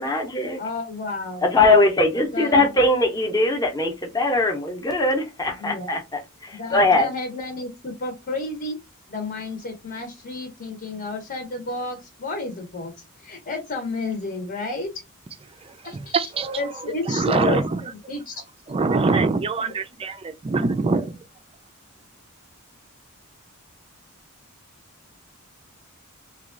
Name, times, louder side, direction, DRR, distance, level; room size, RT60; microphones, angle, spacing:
voice 1, 0.0-0.6 1.4-7.1, left 2 dB, 15° left, 0.7 m, -21 dB
voice 2, 0.6-1.6 2.3-2.7 5.6-5.9 6.5-8.8 9.1-12.9 13.2-14.9 15.8-16.1 16.6-17.6 17.9-18.4 18.9-19.0 19.6-19.7, left 3 dB, 45° left, 0.9 m, -31 dB
voice 3, 15.6-16.7 17.1-17.8 18.7-21.2, right 3 dB, 25° right, 0.4 m, -24 dB
3.0 x 2.3 x 3.7 m
head